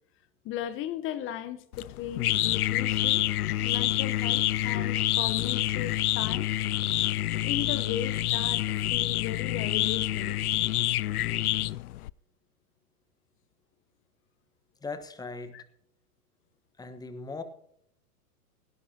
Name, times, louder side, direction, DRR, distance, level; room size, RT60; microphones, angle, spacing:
voice 1, 0.4-3.2 3.6-6.5 7.4-10.4 15.5-15.6, left 11 dB, 25° left, 1.0 m, -36 dB
sound 1, 1.7-12.1, left 14 dB, 70° left, 0.5 m, -27 dB
voice 2, 14.8-15.6 16.8-17.4, left 3 dB, 10° left, 1.3 m, -39 dB
17.5 x 16.0 x 2.9 m
hypercardioid pair, 110°, 46 cm